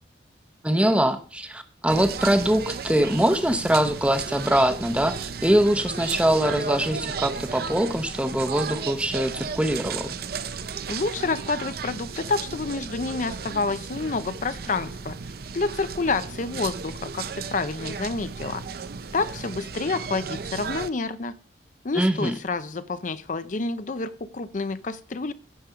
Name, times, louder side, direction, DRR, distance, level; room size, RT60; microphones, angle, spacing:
voice 1, 0.6-10.2 21.9-22.3, right 1 dB, 5° right, 9 dB, 0.8 m, -23 dB
sound 1, 1.9-20.9, right 5 dB, 55° right, 0.6 m, -34 dB
voice 2, 10.9-15.2 15.5-18.6 19.1-21.3 21.8-25.3, left 3 dB, 45° left, 13 dB, 0.5 m, -28 dB
15.0 x 5.1 x 5.7 m, 0.39 s
head